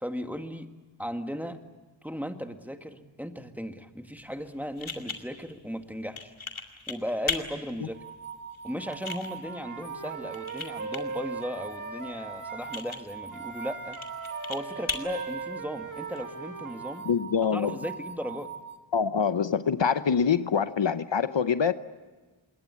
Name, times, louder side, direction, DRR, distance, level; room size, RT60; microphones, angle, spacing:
voice 1, 0.0-0.7 1.0-1.6 2.0-6.3 6.9-8.0 8.6-14.0 14.5-17.0 17.5-18.5, equal, 5° right, 1.9 m, -36 dB
sound 1, 4.2-16.2, left 4 dB, 90° left, 2.3 m, -40 dB
sound 2, 7.9-18.8, right 6 dB, 90° right, 2.1 m, -42 dB
Wind instrument woodwind instrument, 9.4-12.8 13.3-17.1, right 3 dB, 40° right, 2.0 m, -40 dB
voice 2, 17.1-17.8 18.9-21.7, left 6 dB, 65° left, 0.9 m, -25 dB
27.0 x 21.5 x 8.4 m
wide cardioid pair, 55°, 47 cm